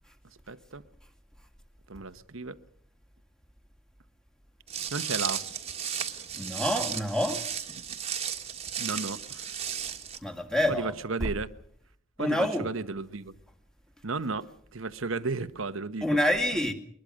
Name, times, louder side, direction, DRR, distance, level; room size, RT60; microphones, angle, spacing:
voice 1, 0.5-0.8 1.9-2.6 4.9-5.4 8.8-9.4 10.7-11.5 12.2-13.4 14.0-16.0, right 3 dB, 65° right, 1.1 m, -34 dB
Walk footsteps, 4.7-10.2, right 8 dB, 30° right, 1.7 m, -34 dB
voice 2, 6.3-7.4 10.2-10.9 11.2-11.3 12.2-12.7 16.0-16.7, left 1 dB, 5° left, 2.2 m, -27 dB
23.0 x 21.0 x 6.4 m
head